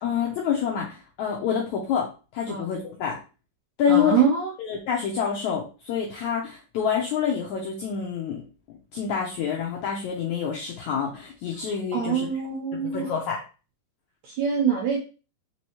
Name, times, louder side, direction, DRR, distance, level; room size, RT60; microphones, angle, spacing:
voice 1, 0.0-3.2 3.8-4.2 4.6-8.4 8.9-12.3 12.9-13.4, left 7 dB, 80° left, -1 dB, 1.7 m, -27 dB
voice 2, 3.9-4.5 11.9-13.2 14.2-15.0, right 7 dB, 80° right, 0 dB, 1.7 m, -24 dB
5.3 x 3.2 x 2.8 m, 0.33 s
omnidirectional pair, 4.2 m